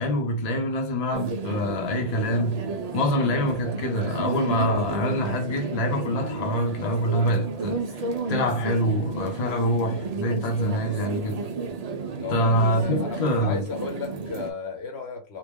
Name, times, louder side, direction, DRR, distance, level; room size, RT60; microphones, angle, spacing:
voice 1, 0.0-2.6 2.9-11.4 12.3-13.6, equal, 40° left, 0.7 m, -25 dB
sound 1, 1.1-14.5, right 4 dB, 60° right, 0.4 m, -32 dB
voice 2, 12.2-15.4, left 5 dB, 65° left, 0.9 m, -35 dB
3.0 x 2.4 x 3.5 m
omnidirectional pair, 1.3 m